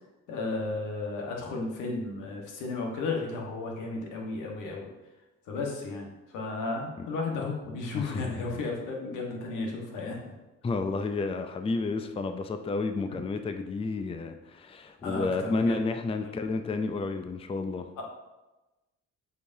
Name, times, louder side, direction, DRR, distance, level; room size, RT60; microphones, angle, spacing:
voice 1, 0.3-4.9 5.5-10.3 15.0-15.8 16.2-16.4 18.0-18.1, left 3 dB, 90° left, 0 dB, 1.4 m, -34 dB
voice 2, 7.9-8.6 10.6-17.9, left 3 dB, 20° left, 8 dB, 0.4 m, -31 dB
8.2 x 4.8 x 2.7 m, 1.1 s
cardioid pair, 90°, 30 cm